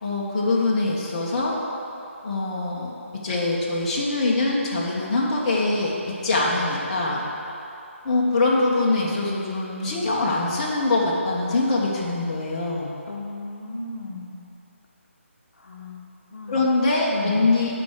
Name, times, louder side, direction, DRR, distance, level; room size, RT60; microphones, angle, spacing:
voice 1, 0.0-1.5 2.2-2.9 3.2-6.0 6.2-7.2 8.0-12.9 16.5-17.8, left 2 dB, 30° left, -5 dB, 1.5 m, -23 dB
voice 2, 13.1-14.4 15.6-16.6 17.1-17.5, left 2 dB, 75° left, 0 dB, 1.0 m, -35 dB
9.4 x 4.6 x 6.6 m, 2.8 s
figure-of-eight pair, 160°, 7 cm